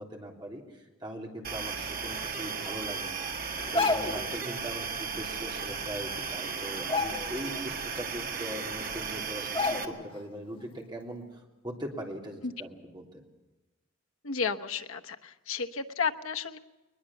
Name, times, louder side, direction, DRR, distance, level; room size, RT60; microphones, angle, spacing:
voice 1, 0.0-13.2, equal, 20° right, 0 dB, 3.3 m, -41 dB
sound 1, 1.4-9.8, right 5 dB, 45° right, 1.6 m, -35 dB
sound 2, 3.6-4.3 5.8-5.9 6.2-6.4 6.8-7.6 8.0-8.1 8.9-9.0 9.5-10.2 10.5-10.7, left 3 dB, 25° left, 1.4 m, -30 dB
voice 2, 14.2-16.6, left 5 dB, 80° left, 6 dB, 1.1 m, -32 dB
21.5 x 21.0 x 7.2 m, 1.1 s
head